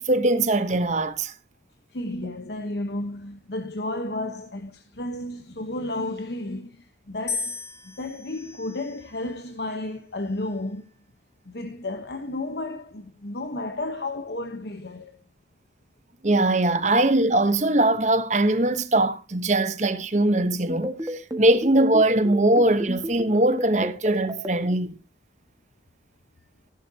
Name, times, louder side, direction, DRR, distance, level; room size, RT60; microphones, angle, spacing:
voice 1, 0.0-1.3 16.2-25.0, right 1 dB, 40° right, 1.0 m, -21 dB
voice 2, 1.9-10.9 11.4-15.2, left 2 dB, 70° left, 1.1 m, -32 dB
sound 1, 7.3-9.5 10.3-10.8, left 4 dB, 15° left, 2.5 m, -36 dB
sound 2, 20.7-24.5, right 1 dB, 20° right, 1.7 m, -31 dB
15.0 x 11.5 x 2.9 m
head